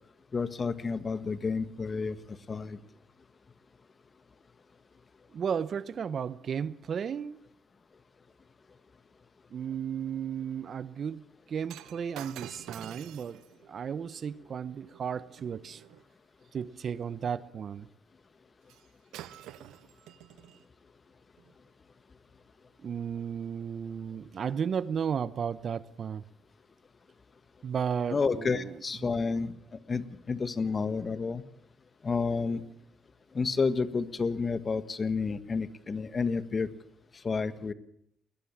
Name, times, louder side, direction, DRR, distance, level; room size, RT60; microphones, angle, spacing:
voice 1, 0.3-2.8 28.1-31.4 32.0-32.6 33.3-36.7 37.2-37.7, left 4 dB, 35° left, 1.6 m, -30 dB
voice 2, 5.3-7.4 9.5-11.2 11.5-13.4 13.7-15.8 16.5-17.9 22.8-26.2 27.6-28.7, right 7 dB, 55° right, 0.9 m, -34 dB
Shatter, 11.7-16.1 18.7-18.9 19.1-20.6 21.4-21.5, right 13 dB, 90° right, 1.0 m, -48 dB
21.0 x 20.5 x 7.4 m
cardioid pair, 90°, 0 cm